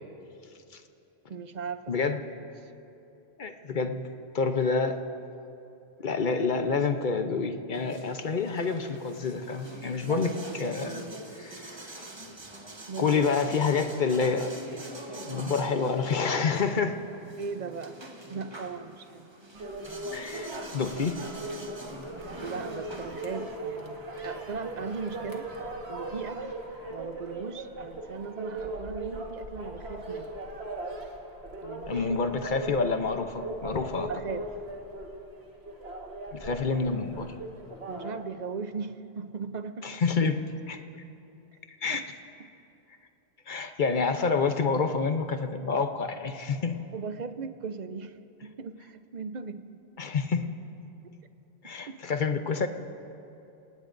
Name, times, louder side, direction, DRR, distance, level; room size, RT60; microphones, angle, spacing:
voice 1, 1.3-2.2 12.9-13.3 17.4-19.3 22.4-25.5 25.9-26.6 26.9-30.3 31.6-32.1 34.1-34.6 37.9-40.0 41.9-42.0 42.4-42.5 46.9-49.7 51.9-52.0, right 5 dB, 50° right, 10 dB, 0.7 m, -38 dB
voice 2, 3.4-4.0 4.3-5.0 6.0-11.1 11.3-12.0 13.0-14.5 15.0-17.0 20.1-21.2 31.9-34.1 36.3-37.3 39.8-40.4 40.7-40.8 41.8-42.0 43.5-46.7 50.0-50.4 51.6-52.7, left 4 dB, 50° left, 7 dB, 0.9 m, -28 dB
sound 1, 7.7-23.6, right 2 dB, 25° right, 1.1 m, -43 dB
sound 2, 19.6-38.1, right 1 dB, 70° right, 1.9 m, -39 dB
27.5 x 18.5 x 2.6 m, 2.8 s
omnidirectional pair, 1.1 m